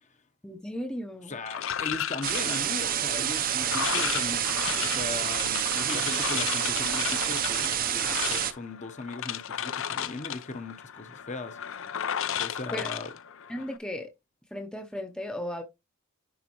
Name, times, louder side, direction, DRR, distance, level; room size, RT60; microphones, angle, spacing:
voice 1, 0.4-1.3 12.7-12.9 13.5-14.1 14.5-15.6, left 1 dB, 5° left, 0.6 m, -35 dB
voice 2, 1.2-11.6 11.9-12.0 12.4-13.1, left 3 dB, 35° left, 0.9 m, -38 dB
sound 1, 1.5-13.8, left 9 dB, 65° left, 0.5 m, -34 dB
sound 2, 2.2-8.5, right 10 dB, 40° right, 0.6 m, -28 dB
10.5 x 4.2 x 2.9 m
head